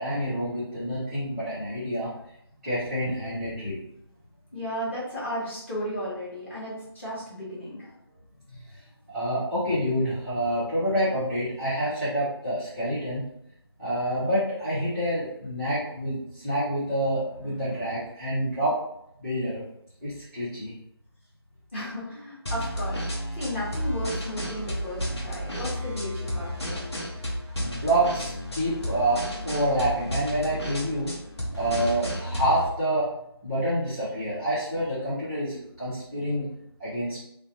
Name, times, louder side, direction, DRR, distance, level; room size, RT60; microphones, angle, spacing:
voice 1, 0.0-2.2 2.6-3.8 8.5-8.8 9.1-13.2 13.8-18.8 19.2-19.6 20.0-20.7 27.4-31.1 31.5-33.1 33.4-36.5 36.8-37.2, right 1 dB, 5° right, -13 dB, 0.8 m, -27 dB
voice 2, 4.5-7.9 21.7-23.0 23.3-26.9, equal, 25° left, -9 dB, 1.0 m, -34 dB
sound 1, 22.5-32.7, equal, 85° left, 0.9 m, -32 dB
2.6 x 2.1 x 2.6 m, 0.75 s
figure-of-eight pair, 160°, 14 cm